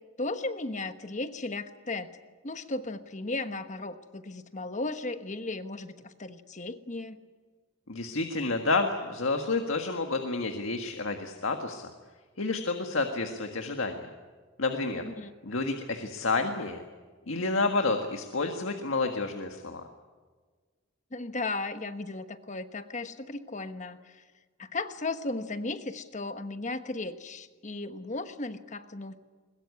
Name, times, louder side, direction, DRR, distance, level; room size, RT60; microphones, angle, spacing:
voice 1, 0.2-2.2 2.4-7.2 15.0-15.3 21.1-24.2 24.6-29.2, left 2 dB, 40° left, 10 dB, 1.2 m, -35 dB
voice 2, 7.9-11.9 12.4-14.1 14.6-15.0 15.4-16.8 17.3-19.8, left 3 dB, 85° left, 4 dB, 1.7 m, -29 dB
21.5 x 21.5 x 9.6 m, 1.5 s
head